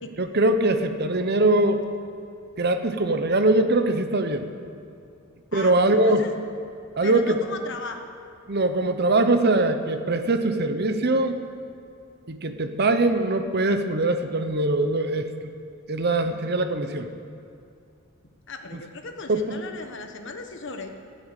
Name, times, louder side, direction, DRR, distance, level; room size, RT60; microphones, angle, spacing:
voice 1, 0.2-1.8 2.6-4.5 5.5-6.3 6.9-7.4 8.5-11.4 12.3-15.3 15.9-17.1 19.3-19.6, right 2 dB, 50° right, 8 dB, 0.9 m, -22 dB
voice 2, 5.5-6.3 7.0-8.0 16.2-16.6 18.5-20.9, left 3 dB, 60° left, 6 dB, 1.2 m, -37 dB
16.0 x 7.3 x 8.2 m, 2.6 s
head